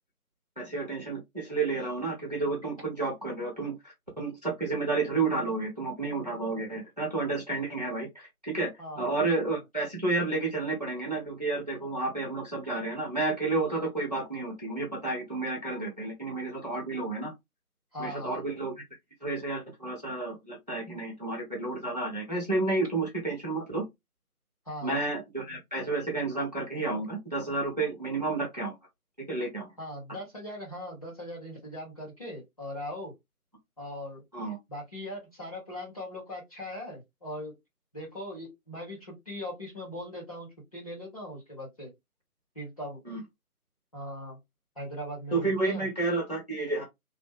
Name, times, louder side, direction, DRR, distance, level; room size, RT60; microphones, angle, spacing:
voice 1, 0.6-8.7 8.9-17.3 18.0-18.7 19.2-23.8 24.8-28.8 29.3-29.7 34.3-34.6 43.1-43.2 45.3-46.8, right 3 dB, 30° right, 0.8 m, -31 dB
voice 2, 8.8-9.3 17.9-18.4 24.6-25.0 29.8-33.1 33.8-34.2 34.7-37.5 37.9-41.9 42.5-43.0 43.9-44.4 44.7-45.9, left 1 dB, 25° left, 1.3 m, -40 dB
3.1 x 2.1 x 3.4 m
figure-of-eight pair, 165°, 45 cm